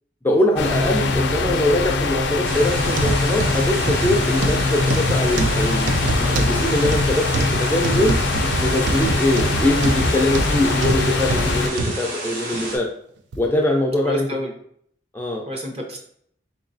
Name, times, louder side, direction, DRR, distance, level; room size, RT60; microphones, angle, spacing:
voice 1, 0.2-5.9 6.2-8.2 8.5-12.9 13.4-14.3 15.1-15.4, left 1 dB, 10° left, 0 dB, 0.4 m, -22 dB
sound 1, 0.6-11.7, left 3 dB, 80° left, 0.5 m, -22 dB
sound 2, 2.4-12.8, right 2 dB, 70° right, 1.4 m, -31 dB
sound 3, 2.9-12.0 12.5-12.7 13.3-13.4, right 2 dB, 90° right, 0.5 m, -25 dB
voice 2, 14.0-14.5 15.5-16.0, equal, 35° right, 1 dB, 0.7 m, -29 dB
4.0 x 2.9 x 2.6 m, 0.65 s
head